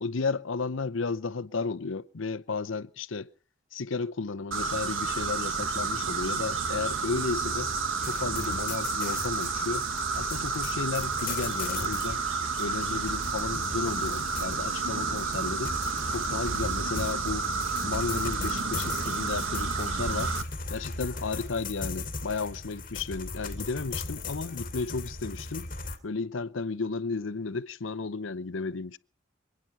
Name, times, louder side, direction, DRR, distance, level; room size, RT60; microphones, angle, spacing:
voice 1, 0.0-3.3 3.7-7.7 8.0-9.9 10.2-12.2 12.6-15.8 16.1-17.5 17.8-20.3 20.7-25.7 26.0-29.0, left 4 dB, 75° left, 0.7 m, -33 dB
sound 1, 4.5-20.4, right 4 dB, 80° right, 1.4 m, -30 dB
sound 2, 8.0-26.0, left 3 dB, 45° left, 2.8 m, -38 dB
27.0 x 9.4 x 5.7 m
head